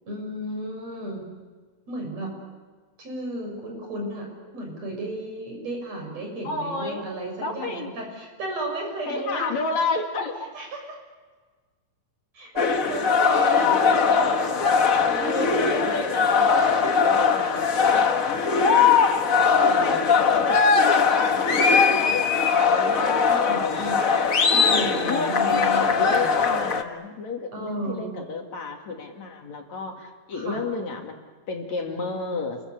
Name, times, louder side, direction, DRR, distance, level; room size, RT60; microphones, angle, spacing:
voice 1, 0.1-1.2 1.9-2.4 3.0-4.3 4.5-9.5 10.5-10.8 12.3-13.9 15.0-16.0 16.5-16.9 17.7-17.9 19.5-20.2 23.3-24.1 24.5-26.3 27.5-28.2 30.3-30.6, right 1 dB, 50° right, 1 dB, 8.0 m, -34 dB
voice 2, 6.4-7.0 7.4-7.9 9.1-10.4 13.3-14.8 15.2-18.4 19.6-24.2 25.1-31.2 31.5-32.6, left 3 dB, 60° left, 3 dB, 3.5 m, -32 dB
sound 1, 12.6-26.8, left 5 dB, 85° left, 0.7 m, -20 dB
30.0 x 23.0 x 8.3 m, 1.4 s
omnidirectional pair, 3.7 m